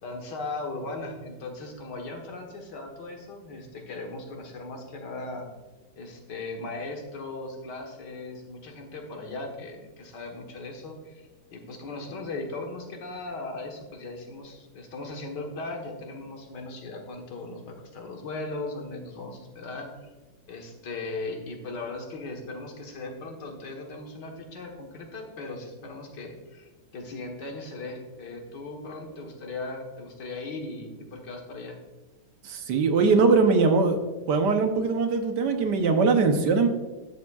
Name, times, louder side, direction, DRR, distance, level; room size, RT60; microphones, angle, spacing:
voice 1, 0.0-5.5 6.0-20.1 20.5-31.8, left 2 dB, 80° left, 1 dB, 2.0 m, -38 dB
voice 2, 32.4-34.0 34.3-36.7, right 4 dB, 75° right, 6 dB, 1.5 m, -21 dB
12.5 x 7.1 x 2.4 m, 1.2 s
omnidirectional pair, 1.8 m